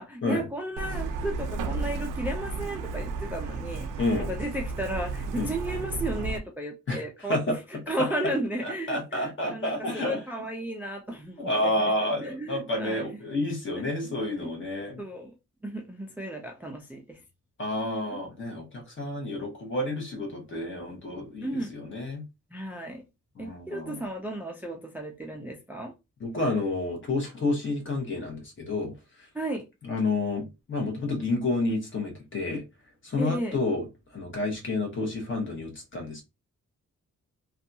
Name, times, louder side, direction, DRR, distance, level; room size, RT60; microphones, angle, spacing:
voice 1, 0.0-3.9 4.3-13.2 13.8-14.1 14.4-14.5 15.0-15.3 15.6-17.2 18.1-18.2 21.4-21.7 22.5-23.0 23.4-25.9 29.3-29.6 33.2-33.6, right 1 dB, 5° right, 0.3 m, -34 dB
Truck, 0.8-6.4, right 4 dB, 85° right, 0.5 m, -33 dB
voice 2, 4.0-4.3 5.3-5.5 6.9-7.0 7.3-7.6 8.9-10.2 11.4-15.0 17.6-22.2 23.4-24.0 26.2-28.9 29.8-32.6 33.0-33.8 34.1-36.2, left 2 dB, 40° left, 1.0 m, -29 dB
2.6 x 2.3 x 2.6 m
wide cardioid pair, 160°, 31 cm